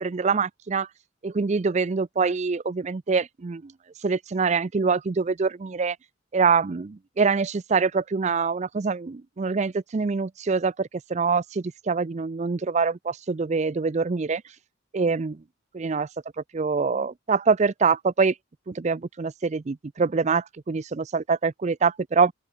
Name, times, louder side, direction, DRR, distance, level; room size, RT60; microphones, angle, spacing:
voice 1, 0.0-0.9 1.2-3.7 4.0-6.0 6.3-14.4 14.9-15.4 15.7-16.1 16.5-18.3 18.7-22.3, right 5 dB, 35° right, 0.4 m, -25 dB
open air
head